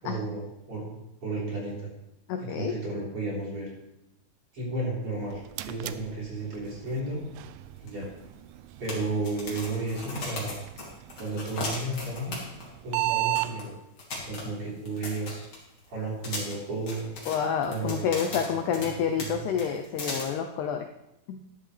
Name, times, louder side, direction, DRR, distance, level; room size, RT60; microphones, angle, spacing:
voice 1, 0.0-1.9 2.5-3.7 4.5-7.2 7.8-8.1 8.8-10.6 11.2-12.4 12.8-13.8 14.2-15.5 15.9-17.1 17.7-18.6 19.1-19.4, right 2 dB, 35° right, -5 dB, 4.5 m, -33 dB
voice 2, 2.3-2.8 17.3-20.9 21.3-21.4, left 7 dB, 80° left, 5 dB, 1.8 m, -28 dB
sound 1, 5.0-13.5, right 18 dB, 90° right, 2.4 m, -36 dB
sound 2, 7.9-8.0 8.2-8.3 8.8-12.7 13.0-13.1 13.3-13.6 14.0-15.8 16.2-18.9 19.2-19.3 19.6-20.2, left 2 dB, 35° left, 3.3 m, -36 dB
14.0 x 11.0 x 3.3 m, 0.89 s
omnidirectional pair, 4.2 m